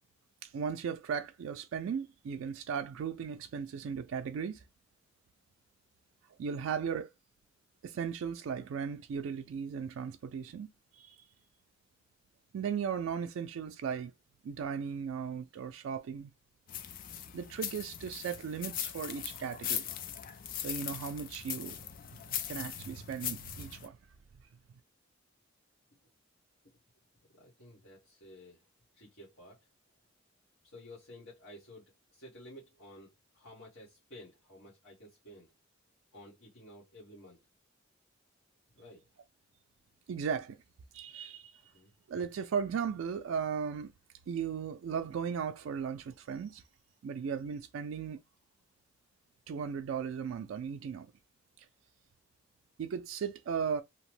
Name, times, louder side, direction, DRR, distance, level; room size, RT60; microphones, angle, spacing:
voice 1, 0.4-4.6 6.4-7.1 7.8-10.7 10.9-11.2 12.5-14.1 14.4-16.3 17.3-19.9 20.6-21.8 22.5-24.0 40.1-40.6 40.9-41.7 42.1-43.9 44.3-46.6 47.0-48.2 49.5-51.1 51.6-51.7 52.8-53.8, right 7 dB, 85° right, 0.3 m, -36 dB
sound 1, 16.7-23.9, left 9 dB, 45° left, 0.3 m, -40 dB
voice 2, 27.3-28.6 28.9-29.6 30.6-35.5 36.1-37.4 38.7-39.1 41.7-41.9, left 1 dB, 90° left, 1.1 m, -53 dB
2.8 x 2.0 x 3.1 m
head